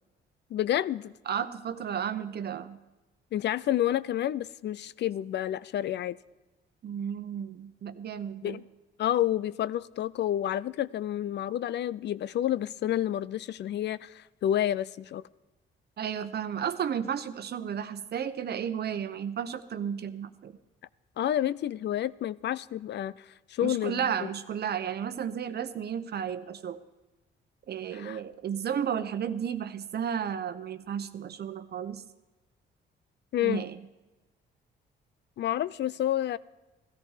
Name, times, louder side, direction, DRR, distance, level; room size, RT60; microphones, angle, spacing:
voice 1, 0.5-1.1 3.3-6.2 8.4-8.6 9.0-15.2 21.2-24.1 27.9-28.2 33.3-33.6 35.4-36.4, left 12 dB, 60° left, 19 dB, 0.5 m, -29 dB
voice 2, 1.3-2.8 6.8-8.6 16.0-20.6 23.6-26.8 27.7-32.0 33.4-33.9, right 8 dB, 55° right, 12 dB, 0.9 m, -33 dB
15.5 x 13.5 x 4.9 m, 1.1 s
cardioid pair, 90°, 20 cm